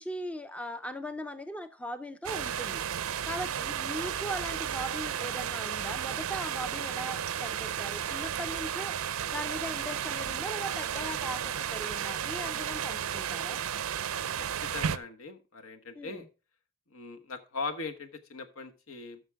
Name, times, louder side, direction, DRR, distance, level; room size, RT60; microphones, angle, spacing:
voice 1, 0.0-2.8 3.2-9.0 9.3-13.6 16.0-16.2, equal, 5° left, 0.4 m, -39 dB
sound 1, 2.2-15.0, right 9 dB, 80° right, 0.5 m, -33 dB
voice 2, 14.4-16.3 16.9-19.2, left 4 dB, 75° left, 1.2 m, -40 dB
13.5 x 6.3 x 3.4 m
head